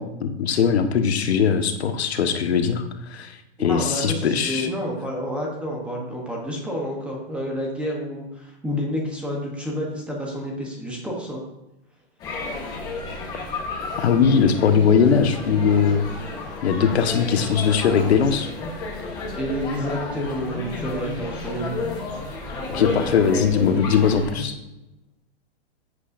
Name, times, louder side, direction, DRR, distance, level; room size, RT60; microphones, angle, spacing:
voice 1, 0.0-4.7 13.8-16.0 16.6-18.5 22.7-24.6, left 6 dB, 85° left, 6 dB, 1.5 m, -20 dB
voice 2, 3.6-11.4 19.3-21.8, equal, 5° right, -1 dB, 1.0 m, -29 dB
sound 1, 12.2-24.3, left 3 dB, 10° left, 1.1 m, -32 dB
13.5 x 8.4 x 2.6 m, 0.93 s
supercardioid pair, 175°, 32 cm